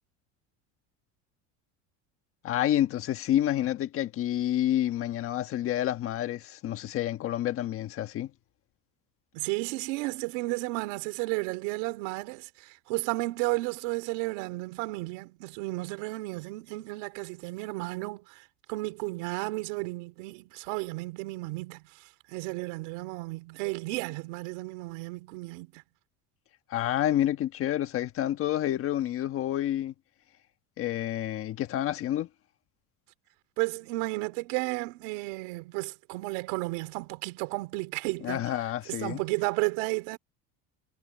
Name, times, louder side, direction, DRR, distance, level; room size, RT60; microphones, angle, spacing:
voice 1, 2.4-8.3 26.7-29.9 30.8-32.3 38.2-39.2, left 12 dB, 35° left, 1.4 m, -29 dB
voice 2, 9.3-25.8 33.6-38.5 38.9-40.2, right 24 dB, 80° right, 3.9 m, -33 dB
cardioid pair, 165°, 36 cm